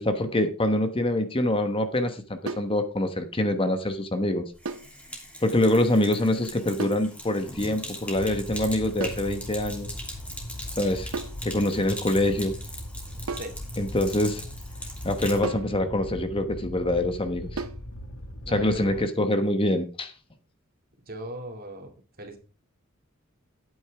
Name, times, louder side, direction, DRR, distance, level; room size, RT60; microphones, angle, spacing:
voice 1, 0.0-4.5 5.4-9.9 10.8-11.1 11.4-12.5 13.8-14.4 15.0-17.6 18.5-20.1, left 1 dB, 25° left, 8 dB, 1.2 m, -25 dB
sound 1, 2.5-2.8 4.7-5.0 6.8-7.1 9.0-9.3 11.1-11.4 13.3-13.6 15.4-15.8 17.6-17.9, right 4 dB, 90° right, 0.8 m, -34 dB
Sink (filling or washing), 4.5-15.5, left 1 dB, 5° left, 2.9 m, -41 dB
Fire, 8.1-19.0, left 1 dB, 80° left, 1.8 m, -39 dB
voice 2, 18.4-19.1 21.1-21.9 22.2-22.4, right 1 dB, 45° right, 5 dB, 2.3 m, -38 dB
12.0 x 9.0 x 3.5 m, 0.33 s
head